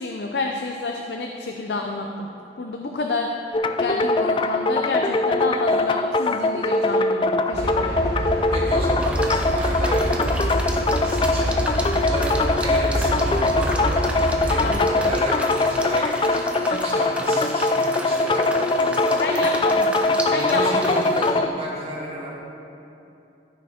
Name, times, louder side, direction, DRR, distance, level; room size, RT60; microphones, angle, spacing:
voice 1, 0.0-2.3 2.6-3.3 3.8-8.4 14.6-14.9 19.2-19.9 20.3-20.9, left 3 dB, 70° left, 2 dB, 0.6 m, -29 dB
sound 1, 3.5-21.5, left 2 dB, 30° left, 0.3 m, -22 dB
sound 2, 7.5-14.7, right 1 dB, 70° right, 1.2 m, -26 dB
voice 2, 8.5-10.5 11.0-11.6 12.0-16.4 16.7-19.5 20.3-22.4, right 1 dB, 35° right, -8 dB, 2.2 m, -32 dB
sound 3, 9.0-21.3, right 1 dB, 5° right, 0.7 m, -34 dB
14.0 x 5.9 x 4.3 m, 2.8 s
head